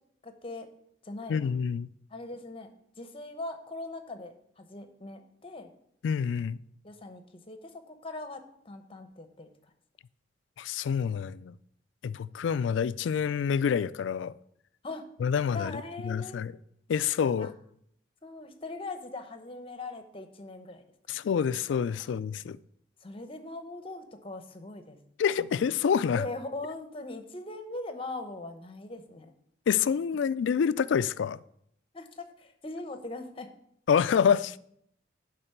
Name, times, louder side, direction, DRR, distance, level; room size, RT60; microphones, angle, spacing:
voice 1, 0.2-0.7 1.0-1.5 2.1-2.7 3.0-5.7 6.8-9.5 14.8-15.1 15.5-16.4 17.4-17.5 18.2-20.8 23.0-25.0 26.1-29.3 31.9-33.5, left 2 dB, 30° left, 0.8 m, -40 dB
voice 2, 1.3-1.9 6.0-6.6 10.6-11.5 12.0-14.3 15.2-16.6 16.9-17.5 21.1-22.6 25.2-26.3 29.7-31.4 33.9-34.6, left 7 dB, 75° left, 0.3 m, -27 dB
10.0 x 3.9 x 6.6 m
head